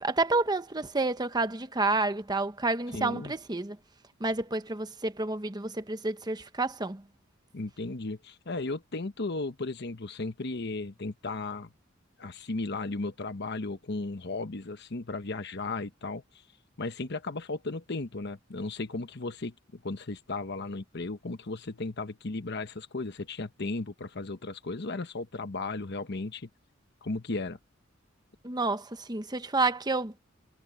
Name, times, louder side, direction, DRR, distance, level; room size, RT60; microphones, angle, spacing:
voice 1, 0.0-3.8 4.2-7.0 28.4-30.1, right 3 dB, 20° right, 1.1 m, -29 dB
voice 2, 2.9-3.3 7.5-11.7 12.2-16.2 16.8-26.5 27.0-27.6, left 3 dB, 60° left, 1.0 m, -35 dB
head